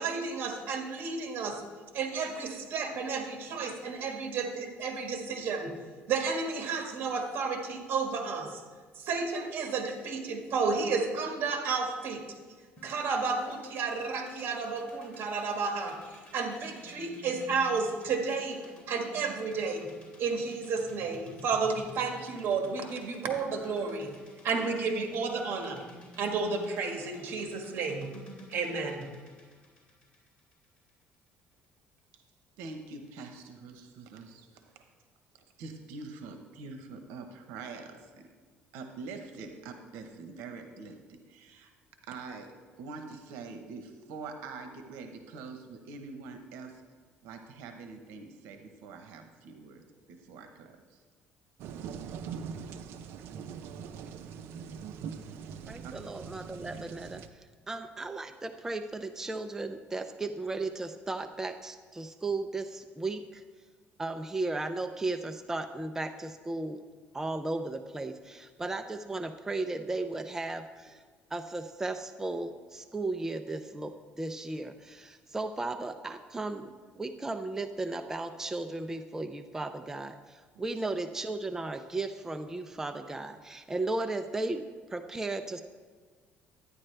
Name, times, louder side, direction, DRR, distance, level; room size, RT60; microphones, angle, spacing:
voice 1, 0.0-1.6 1.9-5.7 6.1-8.6 8.9-12.2 12.8-18.6 18.9-19.9 20.2-24.2 24.4-25.8 26.2-28.1 28.5-29.1, right 4 dB, 55° right, 3 dB, 1.7 m, -32 dB
sound 1, 12.8-30.9, equal, 25° left, 3.0 m, -51 dB
voice 2, 32.6-34.8 35.6-38.1 38.7-41.7 42.0-42.5 42.8-46.8 47.2-49.8 50.1-51.0 55.8-55.9 80.5-80.6, right 4 dB, 90° right, 6 dB, 0.9 m, -44 dB
sound 2, 51.6-57.3, right 6 dB, 75° right, 0.6 m, -42 dB
voice 3, 55.7-57.2 57.7-63.4 64.0-66.8 67.1-71.0 71.3-84.6 84.9-85.6, right 2 dB, 10° right, 7 dB, 0.4 m, -35 dB
11.5 x 9.7 x 3.3 m, 1.5 s
cardioid pair, 115°, 4 cm